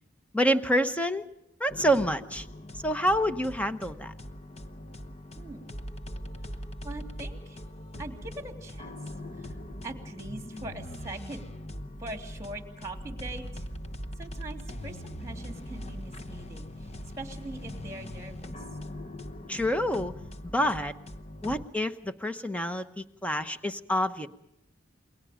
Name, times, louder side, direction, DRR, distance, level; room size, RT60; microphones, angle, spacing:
voice 1, 0.3-1.3 1.6-2.5 2.8-4.1 19.5-20.1 20.4-20.9 21.4-24.3, equal, 5° left, 9 dB, 1.0 m, -27 dB
sound 1, 1.7-21.7, left 1 dB, 30° left, 1.0 m, -41 dB
voice 2, 5.4-5.7 6.8-7.6 8.0-9.0 9.4-9.6 9.8-11.4 12.0-13.7 14.2-16.9 17.2-18.6, right 2 dB, 15° right, 5 dB, 2.9 m, -42 dB
28.5 x 22.0 x 5.1 m, 0.83 s
head